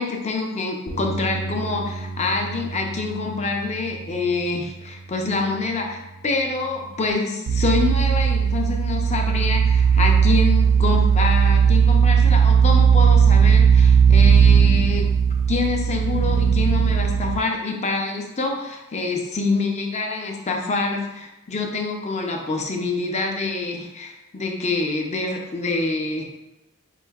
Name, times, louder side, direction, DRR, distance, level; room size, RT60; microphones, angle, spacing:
voice 1, 0.0-15.1 15.5-26.2, left 3 dB, 30° left, 2 dB, 0.6 m, -26 dB
sound 1, 0.9-7.1, right 3 dB, 65° left, 0.9 m, -35 dB
sound 2, 7.5-17.4, right 7 dB, 80° right, 0.3 m, -17 dB
7.8 x 2.7 x 2.3 m, 0.97 s
head